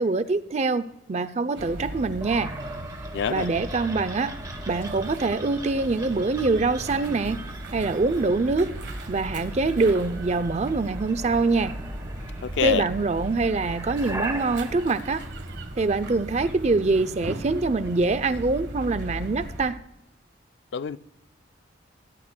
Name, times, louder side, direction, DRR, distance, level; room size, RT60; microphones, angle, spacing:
voice 1, 0.0-2.5 3.3-4.4 4.7-7.4 7.7-8.8 9.1-11.8 12.6-15.2 15.8-19.8, right 3 dB, 35° right, 0.4 m, -24 dB
sound 1, 1.5-19.7, right 1 dB, 70° right, 1.3 m, -37 dB
sound 2, 2.2-16.1, right 1 dB, 20° right, 1.0 m, -40 dB
voice 2, 3.1-3.5 12.4-12.9 20.7-21.0, left 7 dB, 70° left, 0.4 m, -26 dB
20.5 x 10.5 x 2.2 m
head